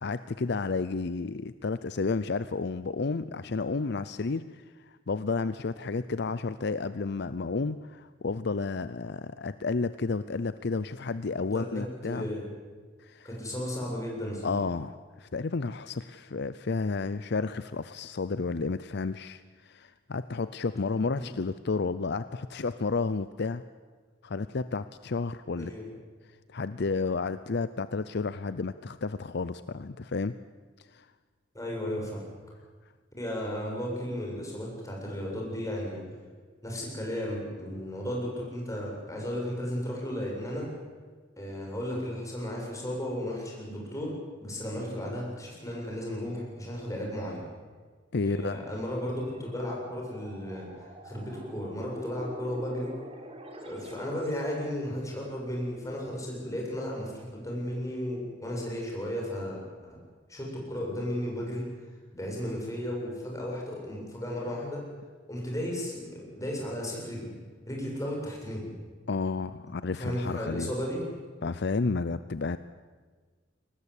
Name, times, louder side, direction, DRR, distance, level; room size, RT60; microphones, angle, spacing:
voice 1, 0.0-12.3 13.0-13.3 14.4-23.6 24.2-25.7 26.5-30.3 30.9-31.1 48.1-48.6 69.1-70.7 71.4-72.6, left 4 dB, 60° left, 14 dB, 0.6 m, -31 dB
voice 2, 11.5-12.5 13.2-14.6 21.2-21.3 25.6-25.9 31.5-32.2 33.2-36.0 36.6-40.7 41.4-44.1 44.4-47.4 48.2-50.7 51.0-52.9 53.6-59.6 59.9-60.0 60.3-61.6 62.1-64.8 65.3-67.4 67.7-68.7 69.9-71.0, equal, 15° left, -2 dB, 7.3 m, -34 dB
sound 1, 49.2-54.6, equal, 30° right, 3.2 m, -46 dB
23.5 x 19.5 x 8.4 m, 1.5 s
head